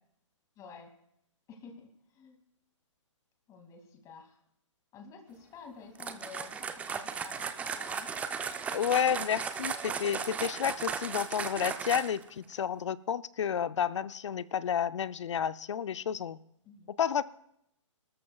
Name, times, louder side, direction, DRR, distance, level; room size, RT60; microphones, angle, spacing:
voice 1, 0.6-0.9 1.5-1.8 2.1-2.4 3.5-4.4 4.9-8.1 16.6-16.9, left 5 dB, 20° left, 4 dB, 2.4 m, -51 dB
sound 1, 5.9-12.3, right 6 dB, 10° right, 0.5 m, -36 dB
voice 2, 8.7-16.4 17.0-17.2, left 8 dB, 65° left, 15 dB, 0.6 m, -31 dB
24.5 x 13.0 x 2.4 m, 0.75 s
hypercardioid pair, 140°, 16 cm